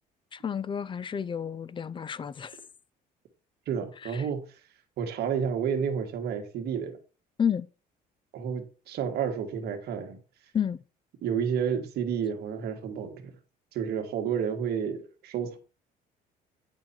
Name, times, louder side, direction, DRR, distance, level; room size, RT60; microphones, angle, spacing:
voice 1, 0.3-2.6 4.0-4.2 7.4-7.7 10.5-10.8, left 8 dB, 30° left, 0.5 m, -30 dB
voice 2, 3.7-4.5 5.0-7.0 8.3-10.2 11.2-13.3 13.7-15.6, right 7 dB, 70° right, 1.9 m, -30 dB
8.9 x 5.7 x 4.3 m
cardioid pair, 110°, 17 cm